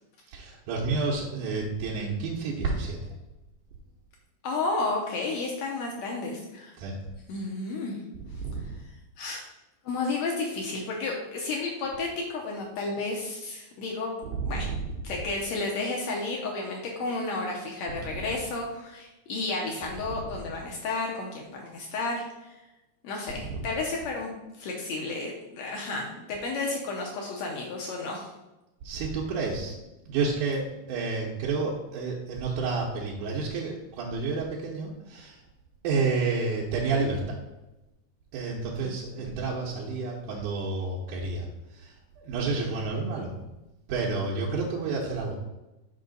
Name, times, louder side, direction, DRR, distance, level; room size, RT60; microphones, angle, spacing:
voice 1, 0.3-3.0 6.8-7.0 8.4-8.6 14.2-14.8 18.1-18.2 20.1-20.2 23.4-23.7 28.8-29.8 30.1-35.4 35.8-37.2 38.3-41.5 41.7-41.9 42.2-43.4 43.9-45.3, right 4 dB, 80° right, -3 dB, 2.3 m, -30 dB
voice 2, 4.4-6.7 7.3-8.0 9.2-9.4 9.9-14.1 14.4-14.7 15.0-22.6 23.0-24.3 24.6-28.3 38.8-39.0, left 3 dB, 70° left, -1 dB, 1.9 m, -32 dB
5.6 x 5.4 x 3.9 m, 0.99 s
omnidirectional pair, 3.6 m